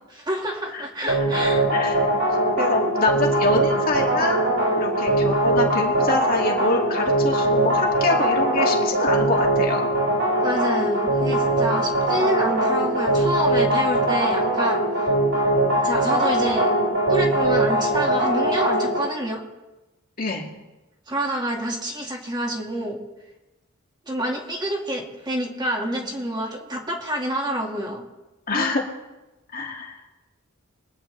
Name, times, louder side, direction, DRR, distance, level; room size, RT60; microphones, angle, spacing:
voice 1, 0.1-1.7 10.4-15.1 15.8-16.7 17.1-19.4 21.1-23.0 24.1-28.1, right 1 dB, 20° right, 0 dB, 2.0 m, -28 dB
sound 1, 1.1-19.0, right 1 dB, 80° right, 5.6 m, -21 dB
voice 2, 2.6-4.4 4.8-9.9 20.2-20.5 28.5-28.8 29.5-30.0, left 3 dB, 45° left, -1 dB, 2.4 m, -25 dB
24.0 x 9.7 x 3.4 m, 1.1 s
head